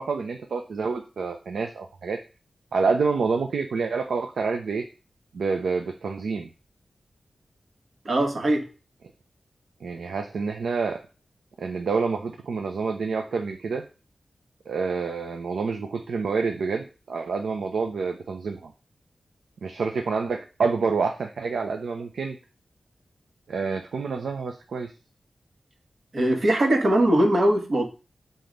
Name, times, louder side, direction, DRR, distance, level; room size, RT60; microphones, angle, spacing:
voice 1, 0.0-2.2 2.7-4.8 5.3-6.5 9.8-11.0 11.6-13.9 14.7-18.7 19.6-22.4 23.5-24.9, right 4 dB, 90° right, 4 dB, 0.7 m, -28 dB
voice 2, 8.1-8.7 26.1-27.9, right 1 dB, 60° right, 3 dB, 1.8 m, -21 dB
6.0 x 3.9 x 5.2 m, 0.33 s
cardioid pair, 50°, 0 cm